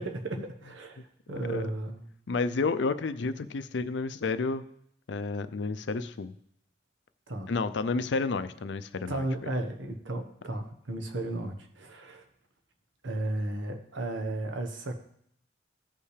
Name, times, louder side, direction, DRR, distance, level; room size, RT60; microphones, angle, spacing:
voice 1, 0.0-2.1 7.3-7.5 9.1-12.2 13.0-14.9, right 2 dB, 85° right, 5 dB, 1.2 m, -34 dB
voice 2, 2.3-4.7 5.1-6.3 7.5-9.2, left 4 dB, 70° left, 13 dB, 0.5 m, -30 dB
16.0 x 5.5 x 3.3 m, 0.70 s
head